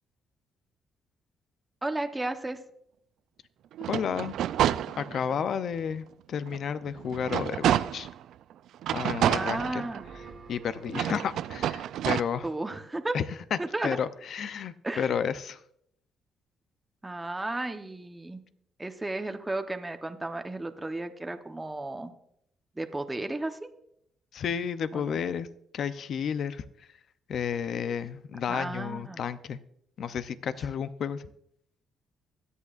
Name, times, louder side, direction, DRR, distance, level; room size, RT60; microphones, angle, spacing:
voice 1, 1.8-2.6 9.2-10.0 12.4-13.2 13.6-14.0 14.8-15.1 17.0-18.4 18.8-22.1 22.8-23.7 24.9-25.2 28.5-29.2, right 2 dB, 15° right, 6 dB, 1.0 m, -34 dB
sound 1, 3.7-5.4 5.9-6.0 6.5-8.2 8.8-10.3 10.9-12.2, right 11 dB, 80° right, 0.3 m, -29 dB
voice 2, 3.9-4.4 5.0-8.1 8.9-9.8 10.5-12.5 13.1-13.2 13.8-15.6 24.3-25.5 25.7-26.7 27.3-29.6 30.0-31.3, left 7 dB, 65° left, 13 dB, 0.6 m, -32 dB
sound 2, 9.5-11.9, right 4 dB, 55° right, 1.4 m, -47 dB
23.5 x 8.4 x 2.5 m, 0.71 s
cardioid pair, 90°, 0 cm